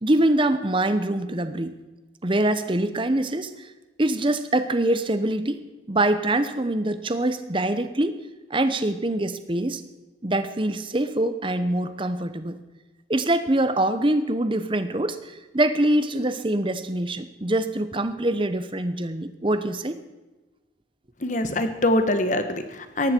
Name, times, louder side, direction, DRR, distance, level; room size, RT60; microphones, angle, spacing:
voice 1, 0.0-1.8 2.2-3.7 4.0-8.2 8.5-9.8 10.2-12.6 13.1-20.0, right 1 dB, 25° right, 11 dB, 0.9 m, -24 dB
voice 2, 21.2-23.1, left 1 dB, 40° left, 8 dB, 1.4 m, -23 dB
18.0 x 15.0 x 4.5 m, 1.1 s
head